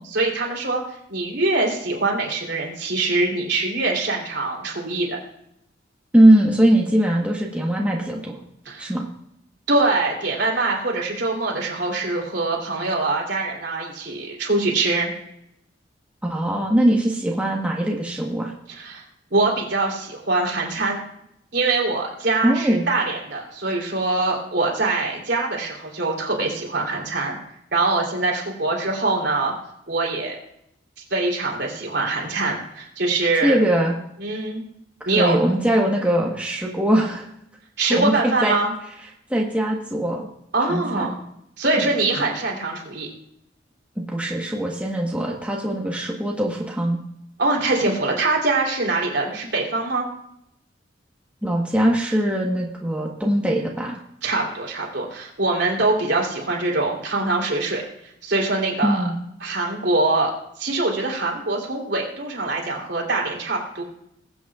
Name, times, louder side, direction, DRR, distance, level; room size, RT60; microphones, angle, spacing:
voice 1, 0.1-0.8 1.1-5.2 8.6-8.9 9.7-15.1 18.7-19.0 19.3-21.0 21.5-27.4 27.7-29.5 29.9-30.3 31.1-33.6 34.2-34.6 35.0-35.4 37.8-38.7 40.5-41.1 41.6-43.1 47.4-50.1 54.2-57.8 58.2-59.0 59.4-60.3 60.6-63.8, right 2 dB, 65° right, -1 dB, 3.3 m, -23 dB
voice 2, 6.1-8.4 8.8-9.0 16.2-18.5 22.4-22.8 33.4-33.9 35.1-37.3 37.9-38.1 38.4-38.5 39.3-40.3 40.7-41.2 41.8-41.9 44.0-47.0 51.4-54.0 58.8-59.1, right 1 dB, 5° right, -2 dB, 1.3 m, -21 dB
21.5 x 8.1 x 2.4 m, 0.78 s
head